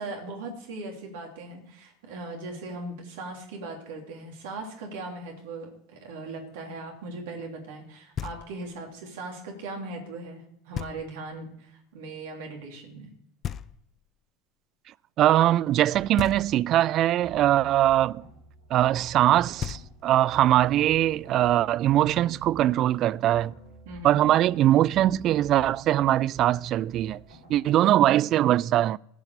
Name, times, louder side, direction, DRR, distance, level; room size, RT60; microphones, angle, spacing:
voice 1, 0.0-13.1 23.8-24.2, right 2 dB, 65° right, 3.3 m, -39 dB
Knock, 8.2-8.8 10.7-11.4 13.4-14.2 16.2-16.9 19.2-19.3 19.6-20.4, left 9 dB, 35° left, 0.5 m, -37 dB
voice 2, 15.2-18.2 18.7-23.5 24.0-27.2 27.5-29.0, right 13 dB, 45° right, 0.4 m, -22 dB
sound 1, 15.9-28.1, right 2 dB, 80° right, 6.3 m, -50 dB
15.5 x 5.9 x 8.2 m
figure-of-eight pair, 75°, 0 cm